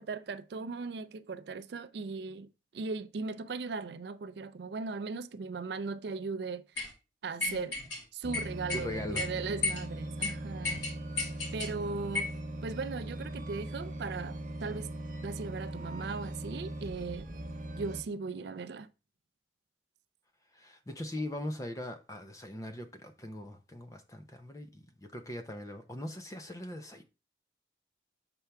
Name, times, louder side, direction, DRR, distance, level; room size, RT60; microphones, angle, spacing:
voice 1, 0.0-2.5 2.7-6.6 7.2-7.8 8.1-10.9 11.5-12.3 12.6-14.9 15.2-17.3 17.8-18.9, right 4 dB, 65° right, 0.4 m, -38 dB
sound 1, 6.8-6.9 7.4-8.0 8.3-8.8 9.1-9.3 9.6-9.8 10.2-10.3 10.6-11.7 12.1-12.4, left 3 dB, 85° left, 2.0 m, -33 dB
sound 2, 8.2-18.0, right 1 dB, 45° right, 1.1 m, -40 dB
voice 2, 8.7-9.3 20.5-27.0, left 1 dB, 20° left, 0.6 m, -40 dB
6.9 x 4.5 x 3.4 m
head